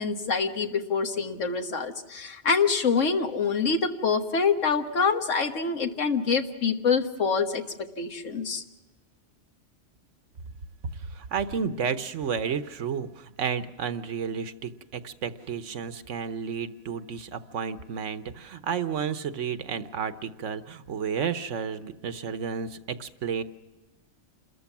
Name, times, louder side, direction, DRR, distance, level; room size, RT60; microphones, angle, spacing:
voice 1, 0.0-7.6 8.0-8.6, left 5 dB, 85° left, 6 dB, 1.8 m, -26 dB
voice 2, 11.1-23.4, right 7 dB, 80° right, 12 dB, 1.3 m, -32 dB
28.0 x 14.0 x 7.2 m, 1.1 s
omnidirectional pair, 1.2 m